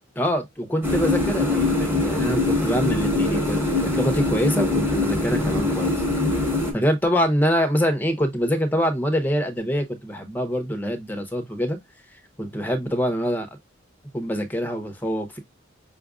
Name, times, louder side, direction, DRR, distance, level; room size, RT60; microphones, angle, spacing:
voice 1, 0.2-6.5 6.7-11.8 12.4-13.5 14.1-15.4, equal, 10° left, 0.8 m, -25 dB
sound 1, 0.8-6.7, left 2 dB, 10° right, 1.2 m, -23 dB
5.6 x 2.5 x 2.3 m
head